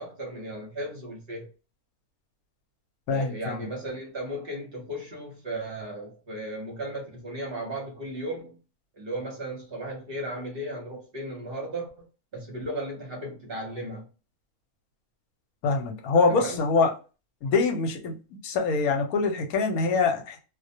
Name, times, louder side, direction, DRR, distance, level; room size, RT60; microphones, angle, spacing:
voice 1, 0.0-1.5 3.1-8.6 9.0-12.1 12.3-14.0 16.3-16.6, right 1 dB, 50° right, 0.8 m, -35 dB
voice 2, 3.1-3.7 15.6-16.9 17.4-18.1 18.4-20.4, left 4 dB, 80° left, 1.1 m, -24 dB
2.4 x 2.1 x 2.6 m
omnidirectional pair, 1.5 m